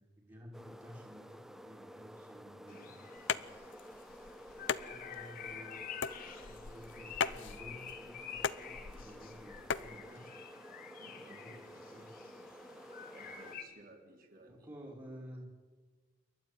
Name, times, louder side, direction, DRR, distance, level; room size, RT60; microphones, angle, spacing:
voice 1, 0.0-3.7 4.5-5.8 6.4-10.3 11.2-12.1 14.4-15.5, equal, 20° right, -3 dB, 2.9 m, -53 dB
sound 1, 0.5-13.5, equal, ahead, 0.8 m, -53 dB
sound 2, 2.7-13.6, left 7 dB, 45° left, 1.9 m, -50 dB
sound 3, 3.2-9.9, left 6 dB, 65° left, 0.7 m, -39 dB
voice 2, 8.6-9.3 11.0-11.7 13.0-14.7, right 2 dB, 50° right, 2 dB, 3.7 m, -59 dB
28.5 x 12.0 x 9.2 m, 1.4 s
head